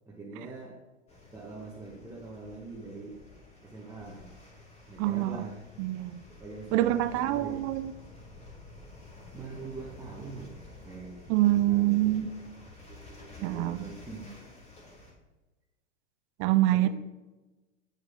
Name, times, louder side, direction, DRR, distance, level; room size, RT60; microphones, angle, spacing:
voice 1, 0.1-0.8 1.3-3.4 3.6-4.3 4.9-5.6 6.4-7.6 9.3-10.6 10.8-12.2 12.9-14.3 16.7-16.9, right 3 dB, 10° right, 1.4 m, -43 dB
sound 1, 1.1-15.1, left 2 dB, 15° left, 2.8 m, -51 dB
voice 2, 5.0-5.5 5.8-6.2 6.7-7.9 11.3-12.3 13.4-13.9 16.4-16.9, right 15 dB, 35° right, 0.5 m, -25 dB
8.3 x 7.8 x 3.6 m
hypercardioid pair, 110°, 37 cm